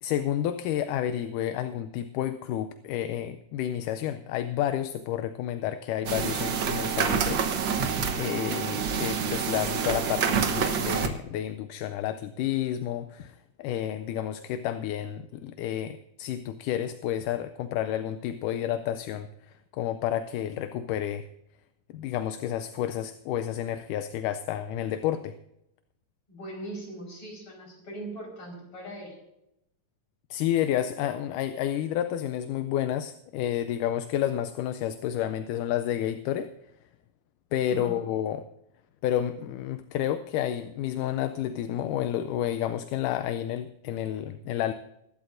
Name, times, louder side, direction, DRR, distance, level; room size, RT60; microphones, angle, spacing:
voice 1, 0.0-7.4 8.1-21.3 21.9-25.3 30.3-36.5 37.5-38.4 39.0-44.7, left 11 dB, 80° left, 10 dB, 2.1 m, -30 dB
sound 1, 6.1-11.1, right 6 dB, 70° right, 1.1 m, -27 dB
voice 2, 26.3-29.2 37.7-37.9, right 1 dB, 45° left, 0 dB, 5.6 m, -40 dB
23.5 x 12.0 x 2.6 m, 0.81 s
omnidirectional pair, 3.7 m